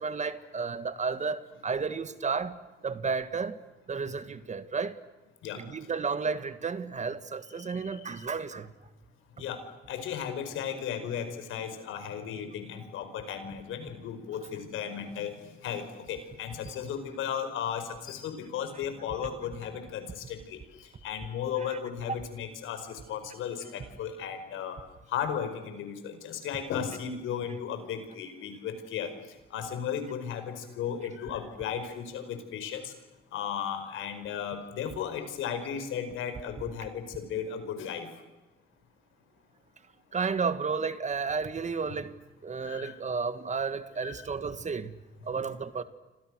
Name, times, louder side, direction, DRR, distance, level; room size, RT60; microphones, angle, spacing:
voice 1, 0.0-2.6 2.8-3.6 3.9-5.0 5.6-8.7 40.1-45.0 45.2-45.8, right 5 dB, 35° right, 1.9 m, -32 dB
voice 2, 9.4-20.6 21.0-24.8 25.1-29.1 29.5-32.9 33.3-38.1 42.6-42.9 43.9-44.3 45.3-45.4, left 8 dB, 85° left, 5.0 m, -35 dB
30.0 x 26.5 x 6.4 m
cardioid pair, 90°, 20 cm